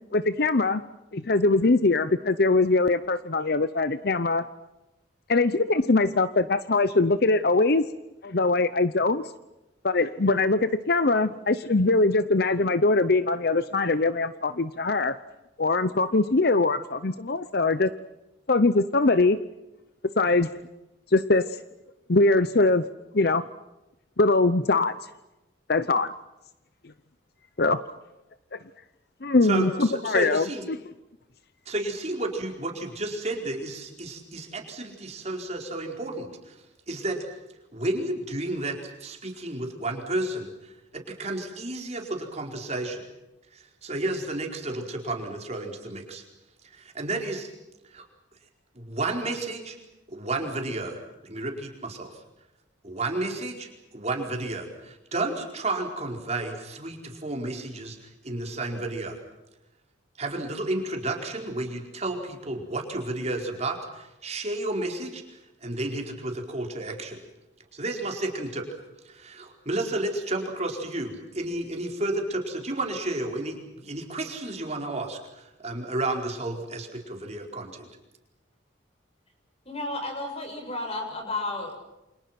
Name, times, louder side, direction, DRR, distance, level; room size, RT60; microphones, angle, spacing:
voice 1, 0.1-0.8 1.1-4.4 5.3-7.8 8.2-9.3 9.8-15.2 15.6-17.9 18.5-19.4 20.2-20.5 21.1-21.6 22.1-22.8 23.1-23.4 24.2-24.9 25.7-26.1 27.6-27.8 28.5-28.6 29.2-30.8, left 3 dB, 50° left, 13 dB, 0.8 m, -22 dB
voice 2, 29.4-30.6 31.6-37.3 37.7-43.0 43.5-46.2 46.6-47.5 47.9-48.0 48.7-49.8 50.1-52.2 52.8-59.2 60.2-67.2 67.7-68.7 69.0-77.9, right 2 dB, 35° right, 2 dB, 4.7 m, -32 dB
voice 3, 79.7-81.8, left 2 dB, 30° left, 3 dB, 7.3 m, -32 dB
29.0 x 27.0 x 6.0 m, 1.0 s
head